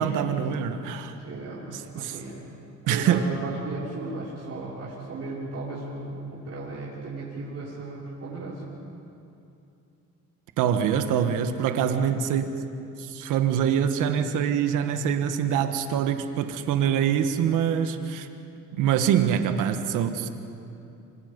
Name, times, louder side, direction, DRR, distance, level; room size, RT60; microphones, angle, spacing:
voice 1, 0.0-1.2 1.7-2.2 2.9-3.2 10.6-12.6 13.0-18.3 18.7-20.3, right 8 dB, 80° right, 7 dB, 1.5 m, -24 dB
voice 2, 1.2-1.7 1.9-2.4 2.8-8.8, right 3 dB, 50° right, -8 dB, 5.8 m, -35 dB
27.5 x 25.5 x 5.4 m, 2.7 s
cardioid pair, 95°, 31 cm